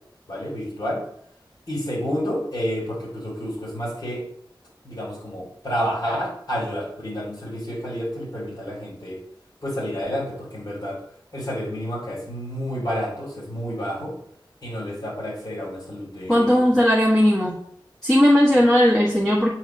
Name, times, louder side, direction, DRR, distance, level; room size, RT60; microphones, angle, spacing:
voice 1, 0.3-1.0 1.7-4.2 4.8-9.2 9.6-11.0 11.3-14.1 14.6-16.6, equal, 50° left, -4 dB, 3.0 m, -29 dB
voice 2, 16.3-17.6 18.0-19.5, equal, 5° left, -5 dB, 1.3 m, -17 dB
8.0 x 2.9 x 5.8 m, 0.67 s
wide cardioid pair, 60°, 9 cm